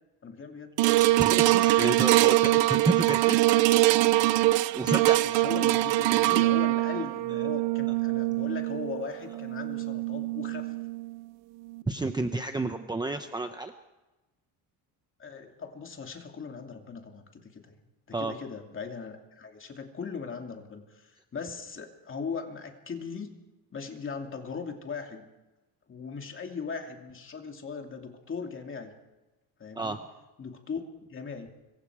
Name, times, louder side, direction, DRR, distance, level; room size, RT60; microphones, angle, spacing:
voice 1, 0.2-0.8 5.2-10.7 15.2-17.8 18.1-23.4 23.7-25.3 25.9-28.9 29.6-30.0 30.4-31.5, left 5 dB, 30° left, 3 dB, 2.7 m, -39 dB
sound 1, 0.8-11.2 11.7-11.8, right 18 dB, 85° right, 0.9 m, -24 dB
voice 2, 1.2-3.4 4.7-5.2 11.9-13.7 18.1-18.3 29.7-30.0, right 3 dB, 10° right, 6 dB, 0.8 m, -30 dB
25.5 x 23.0 x 4.9 m, 1.1 s
cardioid pair, 155°, 42 cm